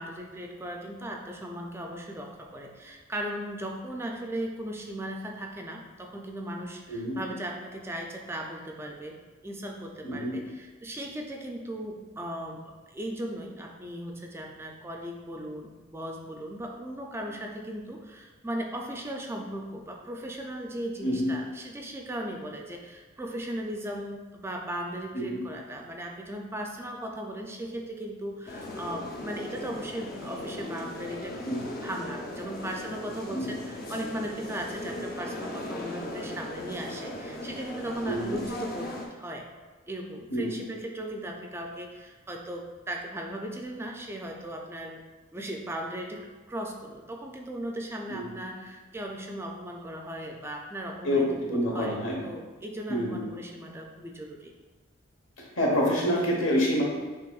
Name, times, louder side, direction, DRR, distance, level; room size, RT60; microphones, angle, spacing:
voice 1, 0.0-9.2 9.4-39.5 39.9-45.0 45.3-54.5, right 1 dB, 15° right, 1 dB, 0.3 m, -37 dB
voice 2, 10.0-10.3 21.0-21.3 25.1-25.4 31.4-31.7 33.3-33.5 38.0-38.4 40.3-40.6 48.1-48.3 51.0-52.2 52.9-53.2 55.4-56.8, equal, 80° left, -2 dB, 1.1 m, -27 dB
sound 1, 28.5-39.1, left 1 dB, 50° left, 0.6 m, -38 dB
6.6 x 2.9 x 2.4 m, 1.3 s
head